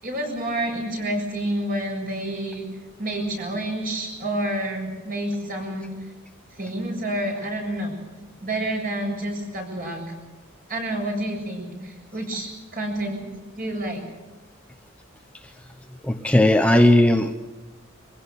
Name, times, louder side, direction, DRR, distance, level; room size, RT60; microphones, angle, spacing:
voice 1, 0.0-2.7 3.0-5.9 6.6-8.0 8.4-10.0 10.7-13.3 13.6-14.0, right 1 dB, 45° right, 1 dB, 7.4 m, -29 dB
voice 2, 16.0-17.3, left 1 dB, 5° left, 5 dB, 0.8 m, -17 dB
25.0 x 16.5 x 8.4 m, 1.2 s
head